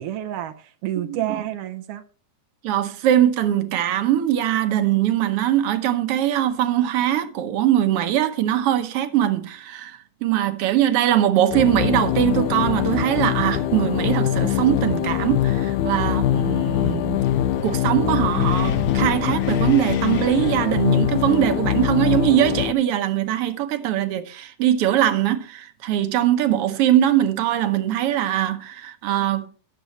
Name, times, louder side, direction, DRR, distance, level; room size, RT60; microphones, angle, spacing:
voice 1, 0.0-2.0, right 12 dB, 85° right, 1.3 m, -29 dB
voice 2, 1.0-1.4 2.6-17.2 17.6-29.5, right 11 dB, 70° right, 1.5 m, -21 dB
sound 1, 11.5-22.7, left 12 dB, 80° left, 2.1 m, -23 dB
Wind, 15.0-22.4, left 5 dB, 65° left, 1.8 m, -36 dB
19.5 x 6.8 x 3.0 m
omnidirectional pair, 3.5 m